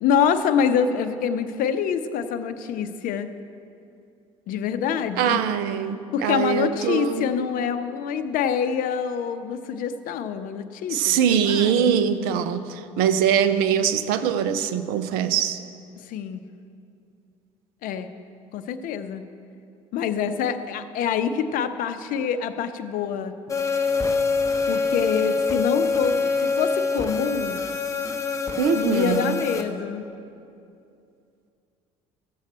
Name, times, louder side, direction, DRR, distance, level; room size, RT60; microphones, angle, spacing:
voice 1, 0.0-3.3 4.5-5.4 6.1-12.0 16.1-16.4 17.8-18.1 18.5-19.2 19.9-23.3 24.7-27.6 28.7-30.1, left 7 dB, 55° left, 11 dB, 0.7 m, -26 dB
voice 2, 5.2-7.3 10.9-15.6 28.6-29.4, right 8 dB, 65° right, 11 dB, 0.6 m, -22 dB
sound 1, 23.5-29.6, left 4 dB, 20° left, 1.0 m, -25 dB
15.0 x 7.2 x 4.3 m, 2.6 s
hypercardioid pair, 60°, 17 cm